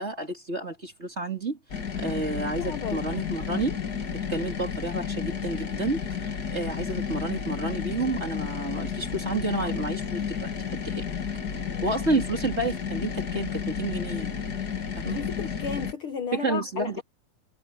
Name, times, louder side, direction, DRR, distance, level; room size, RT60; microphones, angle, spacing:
voice 1, 0.0-1.6 2.0-3.7 4.3-11.0 11.8-14.3 15.0-15.2 16.3-17.0, right 3 dB, 20° right, 2.6 m, -30 dB
sound 1, 1.7-15.9, left 7 dB, 40° left, 1.9 m, -32 dB
voice 2, 2.6-3.1 11.7-12.0 15.0-17.0, left 6 dB, 55° left, 1.7 m, -34 dB
omnidirectional pair, 3.5 m